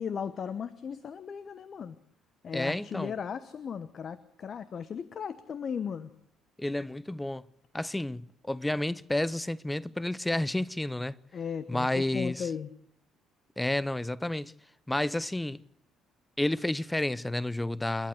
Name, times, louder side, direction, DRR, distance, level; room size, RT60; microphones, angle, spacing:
voice 1, 0.0-2.0 2.4-6.1 11.3-12.7, left 7 dB, 45° left, 0.9 m, -36 dB
voice 2, 2.5-3.1 6.6-7.4 7.7-11.1 11.7-12.5 13.6-14.5 14.9-15.6 16.4-18.1, left 1 dB, 10° left, 0.7 m, -30 dB
28.0 x 11.5 x 7.9 m
figure-of-eight pair, 50°, 0 cm